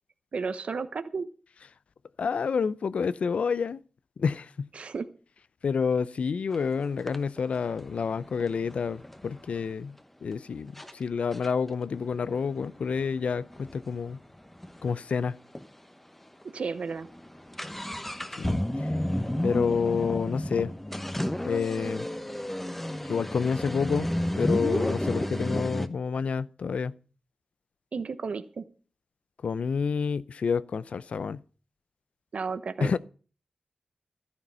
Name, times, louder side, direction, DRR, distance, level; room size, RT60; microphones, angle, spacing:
voice 1, 0.3-1.3 4.7-5.1 16.5-17.1 27.9-28.7 32.3-33.0, right 5 dB, 65° right, 1.0 m, -33 dB
voice 2, 2.2-3.8 4.2-4.7 5.6-14.2 14.8-15.4 18.4-18.9 19.4-20.7 21.4-22.1 23.0-24.1 24.3-26.9 29.4-31.4 32.8-33.0, left 5 dB, 75° left, 0.6 m, -29 dB
sound 1, 6.5-6.6 7.1-9.7 10.3-10.4 10.8-10.9 11.3-15.0 15.3-15.4 15.6-15.7 16.3-16.4 16.7-25.9, left 1 dB, 10° left, 1.0 m, -32 dB
13.5 x 9.7 x 5.4 m
wide cardioid pair, 105°, 2 cm